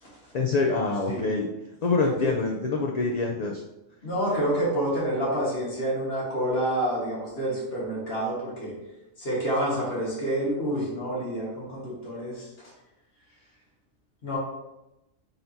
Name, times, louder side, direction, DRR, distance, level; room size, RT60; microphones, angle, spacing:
voice 1, 0.3-1.5 1.8-3.6, left 3 dB, 80° left, 0 dB, 0.3 m, -25 dB
voice 2, 2.0-2.3 4.0-8.7 9.2-12.5 14.2-14.4, right 1 dB, 55° left, -5 dB, 1.7 m, -28 dB
4.3 x 4.0 x 2.6 m, 0.93 s
omnidirectional pair, 1.2 m